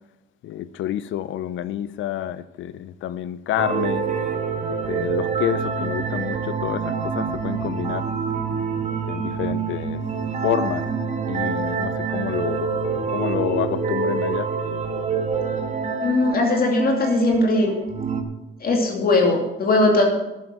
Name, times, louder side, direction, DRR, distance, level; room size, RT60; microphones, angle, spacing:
voice 1, 0.4-4.0 4.7-8.1 9.1-10.0 10.4-10.9 11.3-12.7 13.1-14.5, left 12 dB, 75° left, 0.5 m, -28 dB
sound 1, 3.6-18.2, right 5 dB, 35° right, 1.6 m, -26 dB
voice 2, 16.0-17.7 18.6-20.0, left 2 dB, 50° left, 2.6 m, -19 dB
11.5 x 7.3 x 7.5 m
cardioid pair, 90°, 20 cm